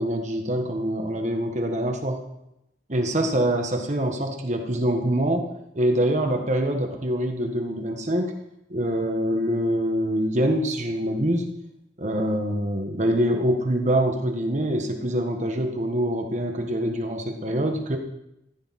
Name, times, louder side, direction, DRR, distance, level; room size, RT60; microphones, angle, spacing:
voice 1, 0.0-2.2 2.9-5.5 5.7-8.3 8.7-11.5 12.0-18.0, right 1 dB, 40° right, 4 dB, 1.5 m, -25 dB
15.0 x 14.0 x 4.3 m, 0.85 s
head